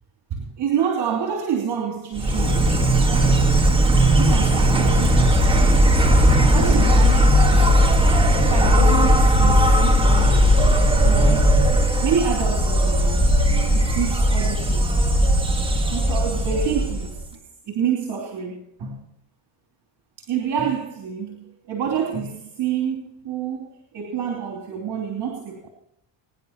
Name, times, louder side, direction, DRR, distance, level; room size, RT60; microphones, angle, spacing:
voice 1, 0.3-3.9 4.2-5.8 6.4-7.9 8.4-10.5 10.8-11.6 12.0-14.9 15.9-17.4 17.6-19.0 20.2-25.7, right 7 dB, 65° right, 3.0 m, -28 dB
Insect, 2.2-17.2, equal, 10° right, 1.7 m, -17 dB
23.0 x 10.5 x 2.9 m
cardioid pair, 110°, 44 cm